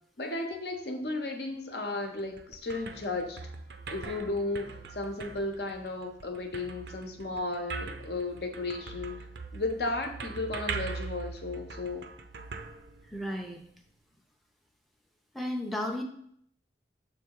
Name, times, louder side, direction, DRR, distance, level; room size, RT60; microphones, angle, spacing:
voice 1, 0.2-3.4 3.9-9.2 9.5-12.0, left 2 dB, 65° left, 4 dB, 0.9 m, -34 dB
sound 1, 2.0-13.5, right 4 dB, 75° right, 0.6 m, -42 dB
voice 2, 13.1-13.6 15.3-16.0, left 1 dB, ahead, 2 dB, 0.5 m, -33 dB
6.5 x 3.4 x 4.6 m, 0.68 s
head